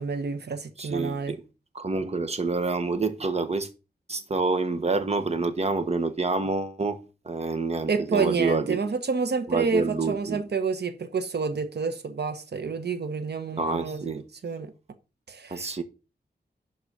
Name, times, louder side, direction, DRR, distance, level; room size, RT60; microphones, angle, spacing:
voice 1, 0.0-1.3 7.9-14.7 15.3-15.7, right 5 dB, 80° right, 1.0 m, -29 dB
voice 2, 0.8-1.4 1.7-3.7 4.1-8.8 9.5-10.4 13.6-14.2 15.5-15.8, right 3 dB, 40° right, 1.3 m, -27 dB
11.5 x 4.1 x 6.5 m
wide cardioid pair, 105°, 17 cm